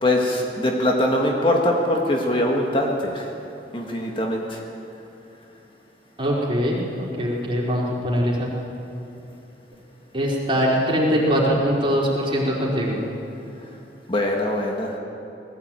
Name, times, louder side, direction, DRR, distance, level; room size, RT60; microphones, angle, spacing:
voice 1, 0.0-3.3 3.7-4.6 14.1-14.9, left 1 dB, 30° left, 0 dB, 1.7 m, -22 dB
voice 2, 6.2-8.5 10.1-12.9, equal, 30° right, -4 dB, 4.4 m, -22 dB
20.0 x 15.0 x 9.0 m, 2.9 s
head